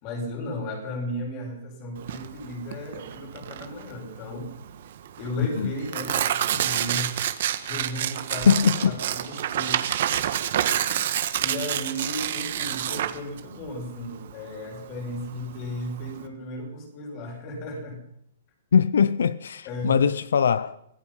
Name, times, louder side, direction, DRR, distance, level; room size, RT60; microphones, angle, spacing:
voice 1, 0.0-4.6 5.2-7.2 7.7-8.5 8.8-9.8 10.7-11.1 11.4-18.0 19.6-20.1, left 1 dB, 25° left, 6.3 m, -35 dB
Tearing, 2.0-16.3, right 11 dB, 45° right, 1.6 m, -28 dB
voice 2, 8.5-9.0 18.7-20.9, left 7 dB, 85° left, 0.8 m, -21 dB
25.5 x 18.0 x 5.7 m
hypercardioid pair, 175°, 0 cm